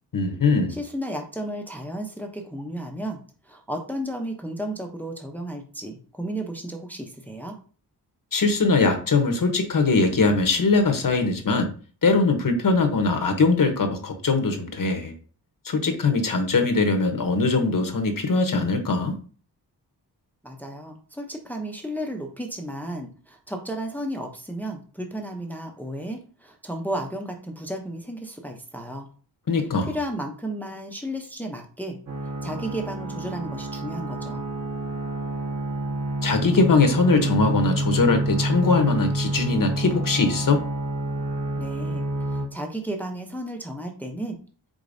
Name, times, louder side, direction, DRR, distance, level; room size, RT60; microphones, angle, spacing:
voice 1, 0.1-0.8 8.3-11.7 12.0-15.1 15.6-19.2 29.5-29.9 36.2-40.6, left 3 dB, 50° left, 5 dB, 0.9 m, -21 dB
voice 2, 0.7-7.6 20.4-29.1 29.9-32.0 32.4-34.4 41.6-42.0 42.3-44.4, right 1 dB, 5° left, 3 dB, 0.6 m, -33 dB
sound 1, 32.1-42.5, right 1 dB, 40° right, 1.4 m, -28 dB
5.0 x 3.8 x 2.6 m, 0.39 s
wide cardioid pair, 105°, 41 cm